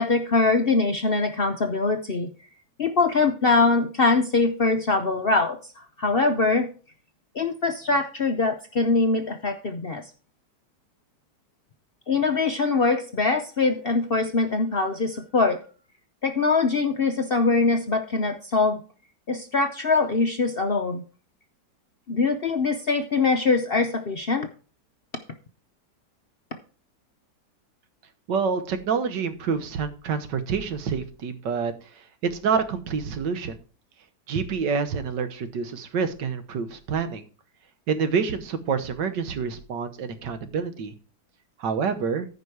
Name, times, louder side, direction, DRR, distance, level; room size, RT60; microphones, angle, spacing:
voice 1, 0.0-2.3 2.8-6.7 7.3-10.0 12.1-15.6 16.2-18.8 19.3-21.0 22.1-24.5, left 3 dB, 55° left, 5 dB, 0.6 m, -23 dB
voice 2, 28.3-31.7 32.2-33.6 34.3-37.2 37.9-40.9 41.6-42.3, right 6 dB, 90° right, 10 dB, 1.8 m, -27 dB
14.0 x 5.3 x 4.7 m, 0.38 s
omnidirectional pair, 1.8 m